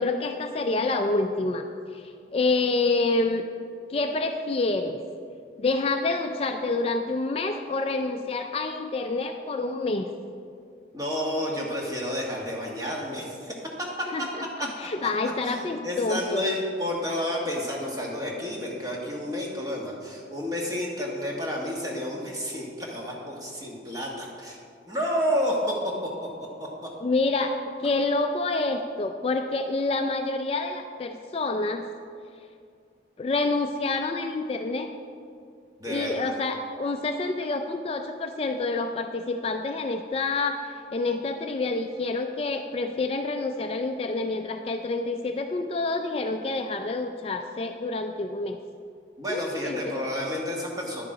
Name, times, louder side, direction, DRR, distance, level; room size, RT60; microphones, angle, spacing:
voice 1, 0.0-1.7 1.9-3.4 3.9-5.0 5.6-10.1 14.1-16.4 27.0-31.9 33.2-34.9 35.9-48.6 49.3-50.0, left 3 dB, 30° left, 5 dB, 0.3 m, -28 dB
voice 2, 10.9-14.3 14.6-14.7 15.0-15.1 15.4-24.6 24.9-26.1 26.6-26.9 35.8-36.3 49.2-51.0, equal, 20° right, -2 dB, 1.4 m, -30 dB
10.5 x 6.7 x 4.8 m, 2.3 s
head